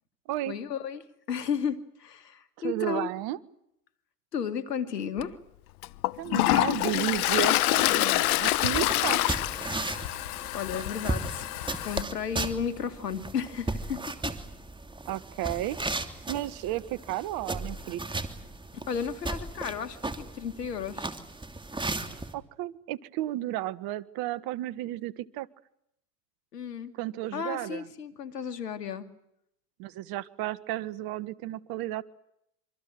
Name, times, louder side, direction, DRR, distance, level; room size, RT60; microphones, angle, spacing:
voice 1, 0.5-3.1 4.3-5.4 9.9-11.5 11.8-14.0 18.7-21.1 26.5-26.9 27.3-29.1, left 7 dB, 85° left, 10 dB, 2.5 m, -34 dB
voice 2, 2.6-3.4 6.2-9.2 15.1-15.8 16.3-18.0 22.1-25.5 27.0-27.8 29.8-32.0, right 14 dB, 50° right, 17 dB, 1.6 m, -33 dB
Toilet flush, 5.2-5.3 5.8-12.0, left 17 dB, 65° left, 1.1 m, -26 dB
sound 1, 8.4-22.3, right 2 dB, 10° right, 2.8 m, -36 dB
26.0 x 25.5 x 7.8 m, 0.77 s
hypercardioid pair, 95°, 47 cm